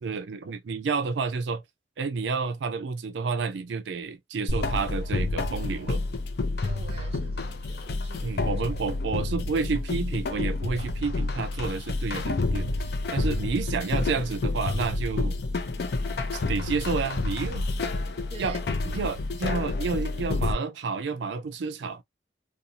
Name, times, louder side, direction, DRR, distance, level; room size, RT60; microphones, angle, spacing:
voice 1, 0.0-1.6 2.0-6.0 8.2-15.4 16.3-17.7 18.4-18.6 18.8-22.0, right 4 dB, 90° right, 0.4 m, -30 dB
sound 1, 4.5-20.5, left 2 dB, 65° left, 0.5 m, -29 dB
voice 2, 6.6-8.4 13.2-13.3 18.3-18.6, right 2 dB, 35° right, 0.7 m, -45 dB
2.6 x 2.3 x 2.7 m
head